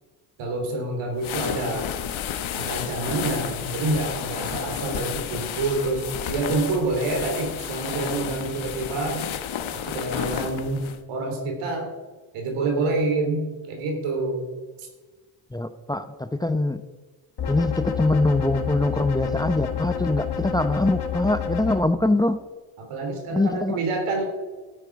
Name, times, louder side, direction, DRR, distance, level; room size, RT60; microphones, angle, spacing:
voice 1, 0.4-1.9 2.5-9.3 9.7-11.9 12.3-14.5 14.8-14.9 22.9-24.2, right 2 dB, 85° right, 3 dB, 3.5 m, -27 dB
sound 1, 1.2-11.0, left 9 dB, 70° left, 1.2 m, -32 dB
voice 2, 15.5-16.8 17.5-22.4 23.3-23.8, left 2 dB, 10° left, 11 dB, 0.7 m, -23 dB
sound 2, 17.4-21.8, left 8 dB, 50° left, 1.8 m, -29 dB
13.5 x 9.1 x 4.8 m, 1.3 s
supercardioid pair, 65°, 49 cm